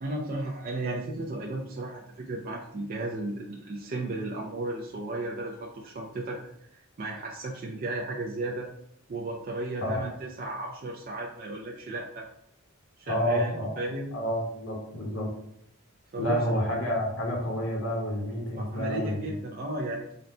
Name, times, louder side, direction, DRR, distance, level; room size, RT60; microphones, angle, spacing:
voice 1, 0.0-6.4 6.7-8.7 9.1-12.3 13.0-13.5 13.8-14.2 16.1-16.6 18.5-20.1, right 2 dB, 40° right, -1 dB, 0.4 m, -34 dB
voice 2, 13.1-13.7 14.1-15.3 16.2-19.3, equal, 65° left, -3 dB, 1.0 m, -29 dB
3.8 x 2.1 x 4.2 m, 0.76 s
head